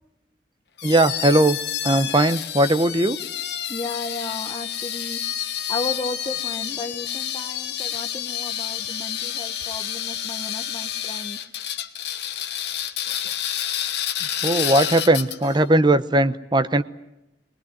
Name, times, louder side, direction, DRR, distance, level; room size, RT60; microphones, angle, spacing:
sound 1, 0.8-15.6, left 10 dB, 65° left, 1.4 m, -29 dB
voice 1, 0.8-1.6 1.8-3.2 14.4-16.8, right 1 dB, 25° right, 11 dB, 0.9 m, -19 dB
voice 2, 3.7-11.4, left 2 dB, 25° left, 1 dB, 1.2 m, -34 dB
23.0 x 20.0 x 9.5 m, 0.92 s
head